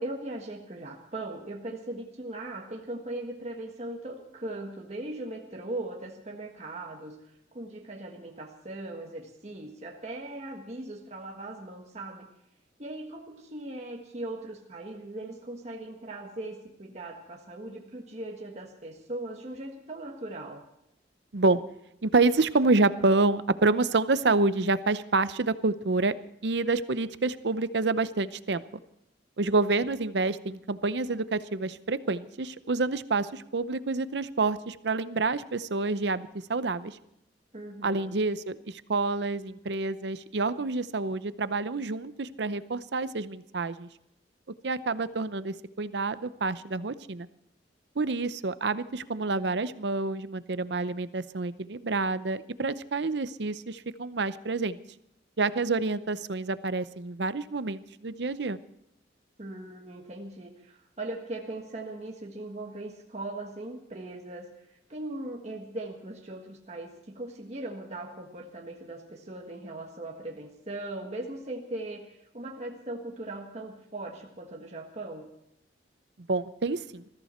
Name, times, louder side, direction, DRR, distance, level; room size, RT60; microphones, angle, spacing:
voice 1, 0.0-7.2 7.5-12.3 12.8-20.6 37.5-38.2 59.4-64.5 64.9-75.2, right 2 dB, 35° right, 0 dB, 1.5 m, -39 dB
voice 2, 22.0-26.1 26.4-28.6 29.4-37.0 37.8-43.9 44.6-47.3 48.0-54.8 55.4-58.6 76.3-77.0, right 3 dB, 70° right, 14 dB, 0.7 m, -28 dB
20.5 x 14.5 x 4.4 m, 0.80 s
head